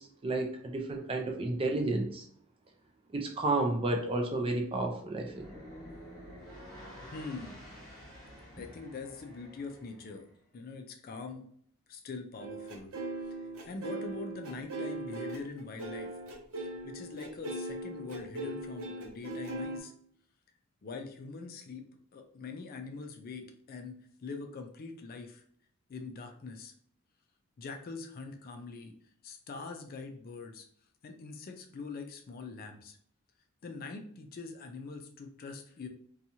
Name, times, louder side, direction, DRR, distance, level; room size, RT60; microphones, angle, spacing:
voice 1, 0.0-2.3 3.1-5.5, right 2 dB, 25° right, 2 dB, 0.4 m, -31 dB
sound 1, 5.2-10.3, equal, 20° left, 1.2 m, -50 dB
voice 2, 7.1-7.6 8.6-11.5 11.9-12.9 13.2-16.1 16.6-19.9 20.8-25.4 25.9-26.7 27.6-28.9 29.2-30.7 31.0-33.0 33.6-35.9, left 4 dB, 45° left, 5 dB, 0.3 m, -43 dB
sound 2, 12.4-19.8, right 2 dB, 80° right, 0.6 m, -39 dB
2.8 x 2.3 x 2.6 m, 0.63 s
head